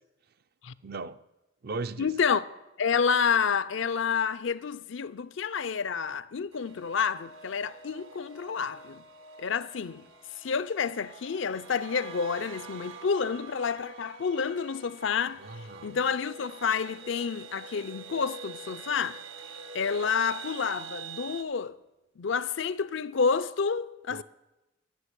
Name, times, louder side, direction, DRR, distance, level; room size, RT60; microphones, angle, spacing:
voice 1, 0.8-1.2 1.6-2.1 15.4-16.0 24.1-24.2, right 3 dB, 50° right, 0.5 m, -37 dB
voice 2, 2.0-2.5 2.8-9.0 9.4-10.1 10.4-15.4 15.8-19.2 19.7-21.8 22.2-24.2, left 6 dB, 70° left, 0.5 m, -29 dB
sound 1, 6.5-21.4, right 5 dB, 80° right, 1.2 m, -46 dB
13.5 x 6.6 x 9.9 m
head